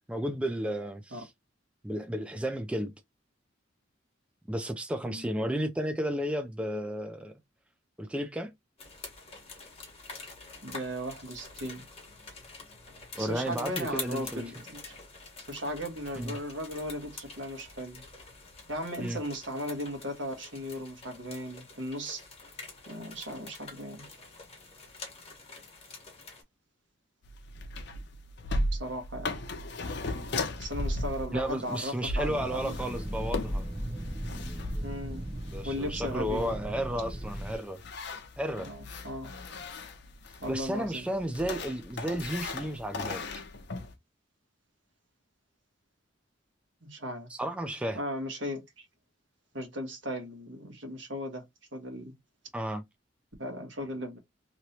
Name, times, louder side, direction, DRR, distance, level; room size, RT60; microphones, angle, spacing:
voice 1, 0.1-1.3 1.8-2.9 4.5-7.4 8.0-8.5 13.2-14.4 16.2-16.3 19.0-19.2 31.3-33.6 35.5-37.8 38.4-38.7 40.5-43.4 47.3-48.0 52.5-52.8, equal, 5° right, 0.3 m, -33 dB
sound 1, 8.8-26.4, left 4 dB, 30° left, 1.2 m, -46 dB
voice 2, 10.6-11.8 13.2-14.9 15.5-18.0 18.7-22.3 22.9-24.1 28.7-29.3 30.6-32.7 34.8-35.2 35.6-36.6 38.5-39.3 40.4-41.1 46.8-47.3 47.9-48.8 49.5-51.4 51.7-52.1 53.4-54.2, equal, 70° right, 1.3 m, -37 dB
sound 2, 27.2-43.9, left 2 dB, 60° left, 0.6 m, -37 dB
sound 3, 32.3-37.6, equal, 30° right, 0.8 m, -37 dB
3.1 x 2.9 x 2.8 m
head